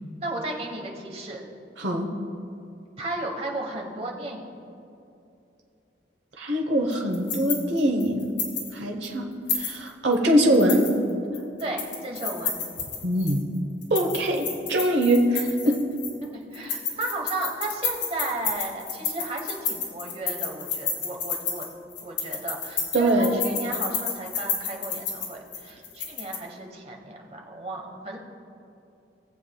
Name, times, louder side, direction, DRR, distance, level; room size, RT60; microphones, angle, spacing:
voice 1, 0.2-1.4 3.0-4.5 11.3-12.6 16.3-21.7 22.0-28.2, right 2 dB, 35° right, 1 dB, 1.2 m, -34 dB
voice 2, 1.8-2.1 6.4-8.3 8.7-10.9 13.0-13.4 13.9-15.8 22.9-23.3, right 1 dB, 80° right, 2 dB, 1.0 m, -23 dB
sound 1, 6.9-8.7 9.0-9.1 9.5-10.1 10.5-13.4 13.8-16.2 16.5-26.4, left 6 dB, 85° left, 1.7 m, -31 dB
19.5 x 7.4 x 2.3 m, 2.7 s
head